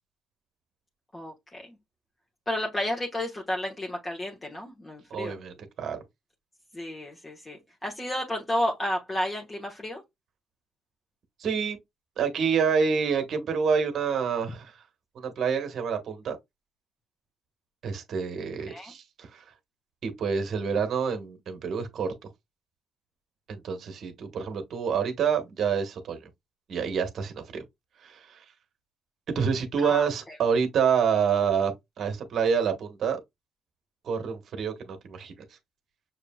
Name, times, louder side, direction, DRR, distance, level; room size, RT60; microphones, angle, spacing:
voice 1, 1.1-1.8 2.5-5.4 6.7-10.0 18.7-18.9 29.8-30.4, left 1 dB, 25° left, 1.1 m, -32 dB
voice 2, 5.1-6.0 11.4-11.8 12.2-14.8 15.1-16.4 17.8-19.4 20.0-22.1 23.5-26.2 26.7-27.6 28.0-28.4 29.3-33.2 34.0-35.3, right 6 dB, 65° right, 1.2 m, -27 dB
6.3 x 2.8 x 2.3 m
cardioid pair, 90°, 0 cm